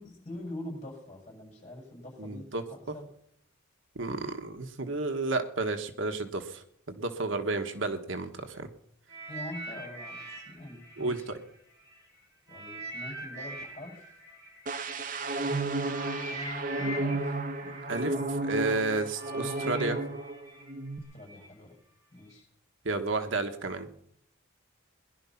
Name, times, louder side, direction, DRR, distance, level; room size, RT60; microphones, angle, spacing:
voice 1, 0.0-3.1 7.3-7.5 9.3-11.3 12.5-14.1 16.3-18.3 21.1-21.8 22.1-22.5, left 1 dB, 35° left, 0 dB, 6.9 m, -44 dB
voice 2, 2.2-2.6 2.9-3.0 3.9-8.7 11.0-11.2 17.9-18.1 18.4-20.0 22.8-23.9, right 3 dB, 70° right, 6 dB, 1.5 m, -31 dB
sound 1, 9.1-12.0 12.5-21.5 22.2-22.3, right 1 dB, 15° right, 5.6 m, -43 dB
sound 2, 14.7-20.4 20.7-21.0, right 2 dB, 40° right, 1.1 m, -32 dB
20.0 x 11.0 x 5.9 m, 0.68 s
head